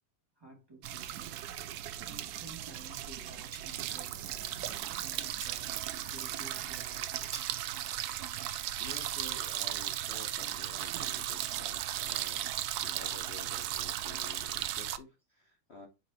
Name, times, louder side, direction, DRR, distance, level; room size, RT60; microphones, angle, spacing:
voice 1, 0.4-1.3 2.0-7.6 12.7-12.8, right 2 dB, 10° right, 2.1 m, -53 dB
sound 1, 0.8-15.0, right 12 dB, 85° right, 0.8 m, -36 dB
sound 2, 5.4-9.8, right 4 dB, 40° right, 1.6 m, -52 dB
voice 2, 8.8-15.9, left 4 dB, 60° left, 0.7 m, -51 dB
6.5 x 5.1 x 2.8 m
omnidirectional pair, 2.2 m